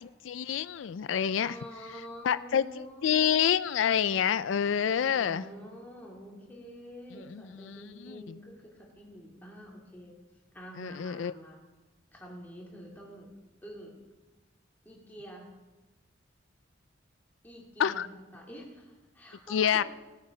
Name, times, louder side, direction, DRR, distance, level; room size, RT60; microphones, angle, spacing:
voice 1, 0.0-1.6 2.2-5.4 7.3-8.2 10.8-11.3 17.8-18.1 19.5-19.8, left 8 dB, 80° left, 16 dB, 0.4 m, -28 dB
voice 2, 1.4-3.4 4.8-10.2 10.5-11.6 12.1-13.3 13.6-14.0 14.8-15.5 17.4-19.8, equal, 10° left, -2 dB, 2.5 m, -47 dB
17.0 x 8.1 x 5.2 m, 1.1 s
head